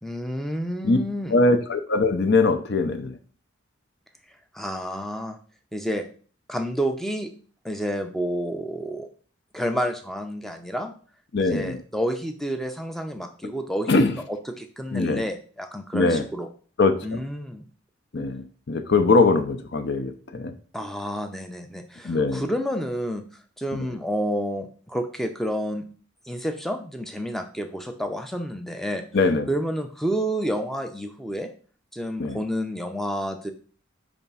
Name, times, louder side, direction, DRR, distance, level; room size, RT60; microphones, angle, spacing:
voice 1, 0.0-1.4 4.5-5.4 5.7-6.0 6.5-7.3 7.6-9.1 9.5-10.9 11.4-16.5 17.0-17.7 20.7-23.2 23.6-25.8 26.3-29.0 29.5-31.5 31.9-33.5, equal, ahead, 6 dB, 0.5 m, -29 dB
voice 2, 1.3-3.1 11.3-11.8 13.9-14.1 14.9-15.2 15.9-16.2 16.8-17.2 18.1-20.5 22.0-22.4 23.7-23.9 29.1-29.5 32.2-32.4, left 3 dB, 55° left, 9 dB, 0.6 m, -21 dB
5.0 x 3.5 x 5.5 m, 0.43 s
head